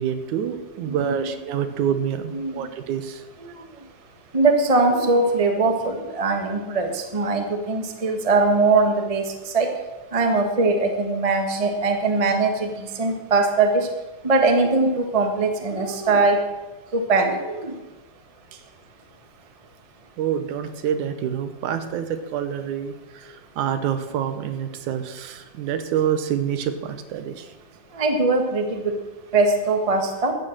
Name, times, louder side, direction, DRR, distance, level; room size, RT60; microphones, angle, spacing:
voice 1, 0.0-3.2 20.2-27.5, right 9 dB, 85° right, 9 dB, 2.4 m, -27 dB
voice 2, 0.9-1.3 2.3-2.7 4.3-9.2 9.5-9.7 10.1-13.9 14.2-16.4 16.9-17.7 27.9-28.9 29.3-30.3, right 3 dB, 30° right, 4 dB, 0.6 m, -21 dB
13.5 x 9.2 x 6.6 m, 1.1 s
omnidirectional pair, 3.4 m